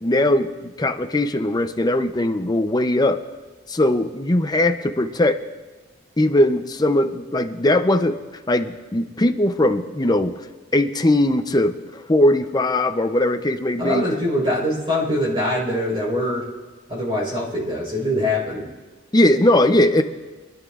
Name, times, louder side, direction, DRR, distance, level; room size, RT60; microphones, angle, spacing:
voice 1, 0.0-3.2 3.7-5.4 6.2-8.2 8.5-10.3 10.7-14.0 19.1-20.0, left 1 dB, 20° left, 7 dB, 0.5 m, -19 dB
voice 2, 13.8-16.4 16.9-18.7, left 1 dB, 25° right, -4 dB, 4.2 m, -23 dB
25.5 x 10.5 x 2.4 m, 1.2 s
head